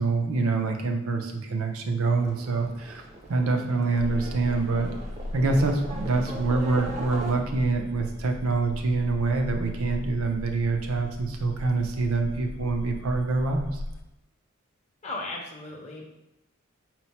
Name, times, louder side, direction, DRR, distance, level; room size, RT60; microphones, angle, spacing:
voice 1, 0.0-3.0 3.3-4.9 5.3-13.8, right 3 dB, 75° right, 4 dB, 0.5 m, -26 dB
Livestock farm animals working animals, 2.0-7.3, right 2 dB, 30° right, 0.5 m, -40 dB
sound 1, 4.0-14.0, left 1 dB, 75° left, 0.4 m, -37 dB
voice 2, 15.0-16.0, left 2 dB, 30° left, -2 dB, 0.6 m, -36 dB
4.3 x 2.1 x 4.2 m, 0.89 s
head